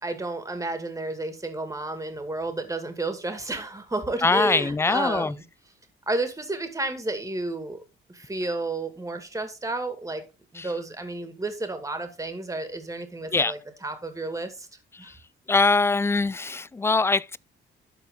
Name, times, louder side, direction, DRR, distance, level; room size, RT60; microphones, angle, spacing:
voice 1, 0.0-5.4 6.1-7.8 8.1-10.2 10.5-14.7 15.0-15.1, right 2 dB, 15° right, 2.2 m, -31 dB
voice 2, 4.2-5.3 10.6-10.7 13.3-13.5 15.5-17.4, left 3 dB, 15° left, 0.3 m, -22 dB
12.0 x 4.4 x 3.9 m
cardioid pair, 90°, 20 cm